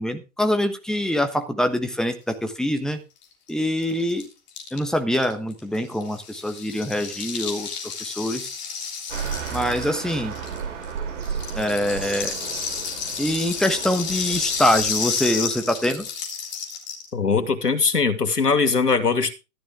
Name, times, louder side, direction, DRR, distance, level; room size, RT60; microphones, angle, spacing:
voice 1, 0.0-3.0 3.5-4.3 4.7-8.5 9.5-10.3 11.5-12.4 13.2-16.1, left 1 dB, ahead, 1.2 m, -24 dB
Rattle (instrument), 3.2-3.3 3.5-3.6 3.8-10.9 11.2-17.1, left 6 dB, 25° left, 3.4 m, -31 dB
sound 1, 9.1-16.1, right 7 dB, 50° right, 6.7 m, -34 dB
voice 2, 17.1-19.3, left 4 dB, 80° left, 2.6 m, -21 dB
14.0 x 12.0 x 3.6 m
figure-of-eight pair, 120°, 47 cm